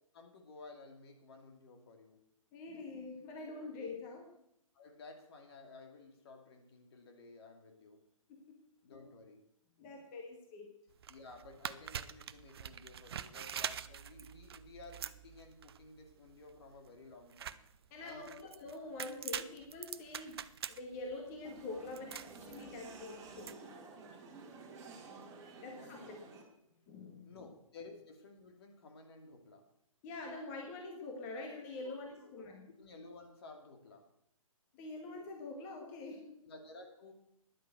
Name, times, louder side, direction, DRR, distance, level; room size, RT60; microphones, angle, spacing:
voice 1, 0.1-2.2 3.6-3.7 4.7-8.0 8.8-9.5 11.1-17.6 18.0-18.4 25.6-26.2 27.2-29.7 31.8-31.9 32.2-32.3 32.8-34.1 36.4-37.1, left 3 dB, 45° left, 4 dB, 2.5 m, -54 dB
voice 2, 2.5-4.3 8.3-8.6 8.9-9.1 9.8-10.7 17.9-20.4 20.7-23.5 25.6-26.2 26.5-27.5 30.0-32.7 34.7-36.4, left 3 dB, 25° left, 2 dB, 2.1 m, -45 dB
sound 1, 10.9-23.5, right 8 dB, 45° right, 0.6 m, -45 dB
sound 2, 21.4-26.4, right 4 dB, 15° right, 2.3 m, -52 dB
10.5 x 9.1 x 7.8 m, 0.76 s
figure-of-eight pair, 130°, 18 cm